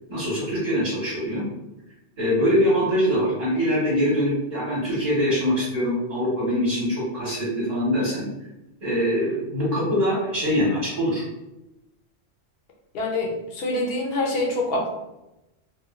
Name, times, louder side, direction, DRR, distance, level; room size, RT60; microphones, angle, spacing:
voice 1, 0.1-1.5 2.2-8.2 8.8-11.2, equal, 40° right, -8 dB, 1.1 m, -23 dB
voice 2, 12.9-14.9, left 2 dB, 65° left, -1 dB, 0.9 m, -25 dB
3.0 x 2.4 x 2.4 m, 0.94 s
omnidirectional pair, 1.1 m